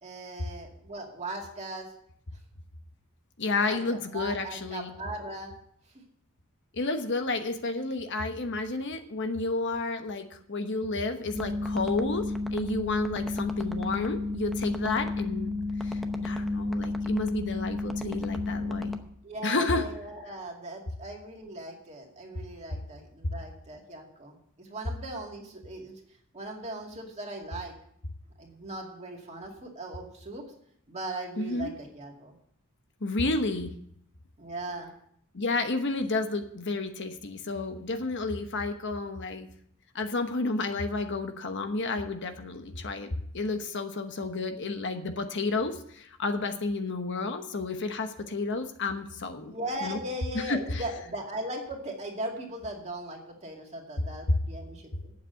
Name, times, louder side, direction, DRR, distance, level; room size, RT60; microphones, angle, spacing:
voice 1, 0.0-1.9 3.7-3.8 4.1-5.5 19.2-25.9 26.3-27.7 28.4-30.4 30.9-32.4 34.4-34.9 49.4-55.1, right 1 dB, 30° right, 0 dB, 2.3 m, -38 dB
voice 2, 3.4-4.9 6.7-12.3 12.5-15.5 15.8-18.9 19.4-19.8 31.4-31.7 33.0-33.7 35.3-39.5 39.9-43.1 43.3-49.5 49.8-50.0 50.3-50.8, left 3 dB, 55° left, 7 dB, 1.0 m, -31 dB
sound 1, 11.3-19.0, left 2 dB, ahead, 0.8 m, -32 dB
8.9 x 7.5 x 9.0 m, 0.68 s
head